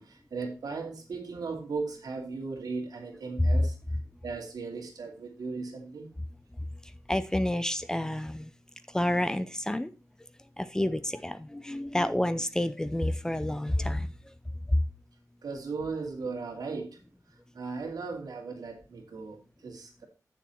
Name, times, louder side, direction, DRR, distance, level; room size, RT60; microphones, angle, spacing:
voice 1, 0.0-3.7 4.2-6.1 15.4-17.0 17.5-20.1, right 4 dB, 85° right, 2 dB, 2.7 m, -37 dB
voice 2, 7.1-8.5 8.9-9.9 10.6-14.3 14.7-14.8, left 1 dB, 10° left, 13 dB, 0.5 m, -29 dB
8.7 x 7.0 x 4.4 m, 0.32 s
wide cardioid pair, 170°, 6 cm